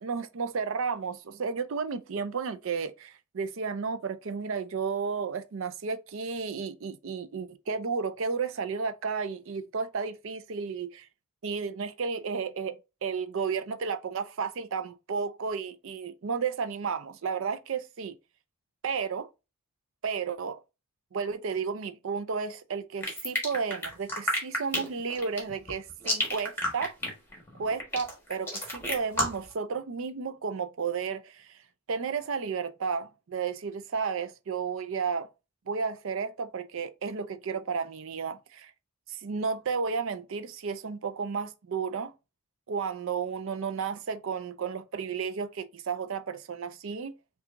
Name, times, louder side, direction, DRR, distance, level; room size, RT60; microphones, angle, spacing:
voice 1, 0.0-11.1 11.4-18.2 18.8-19.3 20.0-20.6 21.1-27.0 27.6-31.6 31.9-35.3 35.7-38.7 39.1-42.1 42.7-47.1, right 5 dB, 65° right, 0.5 m, -33 dB
sound 1, 23.0-29.5, left 1 dB, 10° left, 1.3 m, -30 dB
5.8 x 2.4 x 2.5 m
head